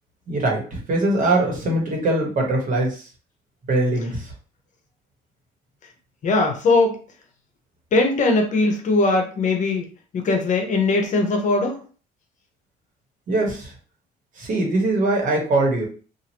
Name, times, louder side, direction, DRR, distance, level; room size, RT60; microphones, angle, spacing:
voice 1, 0.3-2.9 3.7-4.2 13.3-13.7 14.4-15.9, right 2 dB, 50° right, 0 dB, 1.3 m, -21 dB
voice 2, 6.2-7.0 7.9-9.8 10.1-11.8, left 3 dB, 45° left, 3 dB, 0.9 m, -20 dB
2.9 x 2.5 x 2.9 m, 0.38 s
cardioid pair, 110°, 17 cm